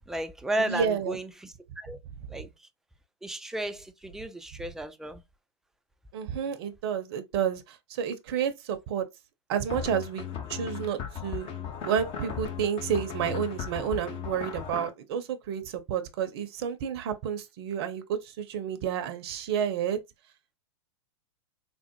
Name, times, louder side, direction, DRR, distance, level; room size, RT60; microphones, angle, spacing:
voice 1, 0.1-2.0 2.3-2.7 3.2-5.2, right 1 dB, 5° right, 0.3 m, -34 dB
voice 2, 0.7-1.2 6.1-9.1 9.5-11.5 11.8-20.0, right 8 dB, 55° right, 0.6 m, -30 dB
sound 1, 9.7-14.9, left 8 dB, 35° left, 0.8 m, -36 dB
3.5 x 2.0 x 2.8 m
hypercardioid pair, 105°, 15 cm